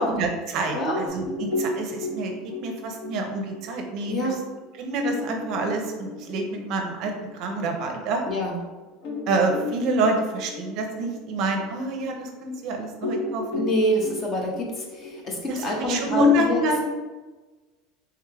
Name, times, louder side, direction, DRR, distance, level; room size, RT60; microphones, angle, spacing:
voice 1, 0.0-2.3 2.6-4.3 4.8-8.2 9.3-13.6 15.5-16.8, right 1 dB, 45° right, 3 dB, 0.6 m, -27 dB
sound 1, 1.1-8.1 8.5-8.6 9.0-12.6 13.0-16.1, left 2 dB, 55° left, 0.8 m, -34 dB
voice 2, 13.5-16.6, equal, 25° left, 0 dB, 0.7 m, -26 dB
3.5 x 3.3 x 3.3 m, 1.2 s
cardioid pair, 170°, 0 cm